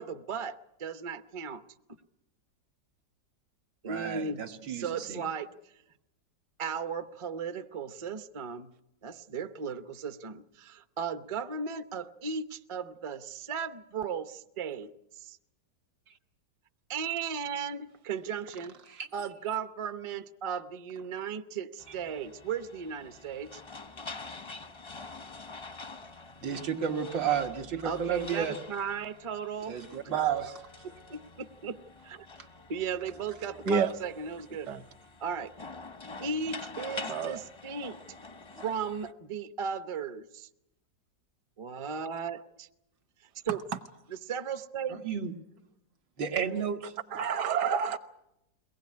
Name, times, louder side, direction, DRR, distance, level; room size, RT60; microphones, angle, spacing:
voice 1, 0.0-1.6 3.8-5.5 6.6-8.7 9.0-14.9 15.2-15.4 16.9-18.8 19.1-23.6 27.8-29.8 30.0-30.2 31.1-31.8 32.0-32.3 32.7-34.7 35.2-35.5 36.2-38.0 38.6-40.5 41.6-42.7 43.4-43.6 44.2-45.0, right 6 dB, 40° right, 0.4 m, -36 dB
voice 2, 3.9-5.2 18.9-19.1 26.4-28.6 29.7-30.7 44.9-45.3 46.2-46.9, right 8 dB, 85° right, 2.1 m, -32 dB
sound 1, 21.8-39.1, left 3 dB, 40° left, 0.4 m, -46 dB
voice 3, 37.1-37.4 47.1-48.0, right 6 dB, 65° right, 1.6 m, -28 dB
22.5 x 18.5 x 9.6 m
omnidirectional pair, 1.9 m